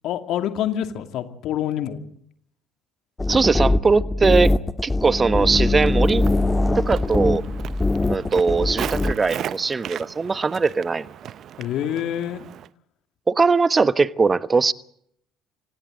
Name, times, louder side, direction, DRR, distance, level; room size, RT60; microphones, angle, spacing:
voice 1, 0.0-2.0 11.6-12.5, left 11 dB, 55° left, 2.6 m, -26 dB
sound 1, 3.2-9.1, left 2 dB, 15° left, 1.5 m, -22 dB
voice 2, 3.3-4.5 4.8-6.2 6.8-7.4 8.1-11.1 13.3-14.7, right 4 dB, 25° right, 1.1 m, -20 dB
Walk footsteps, 5.3-12.7, right 10 dB, 50° right, 0.7 m, -37 dB
29.0 x 26.0 x 4.0 m
figure-of-eight pair, 55°, 0 cm